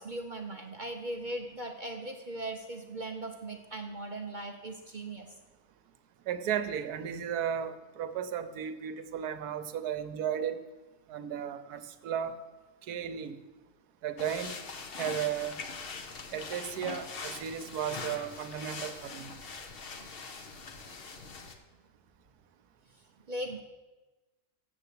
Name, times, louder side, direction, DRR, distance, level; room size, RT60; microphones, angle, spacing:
voice 1, 0.0-5.3 20.0-20.1 20.9-21.0 23.3-23.6, right 1 dB, 45° right, 3 dB, 0.7 m, -39 dB
voice 2, 6.3-10.6 11.1-12.3 12.9-13.4 14.0-14.5 15.0-15.6 16.3-19.3, right 9 dB, 75° right, 10 dB, 1.2 m, -34 dB
sound 1, 14.2-21.5, left 4 dB, 45° left, 0.9 m, -42 dB
8.0 x 6.8 x 8.3 m, 1.2 s
omnidirectional pair, 1.7 m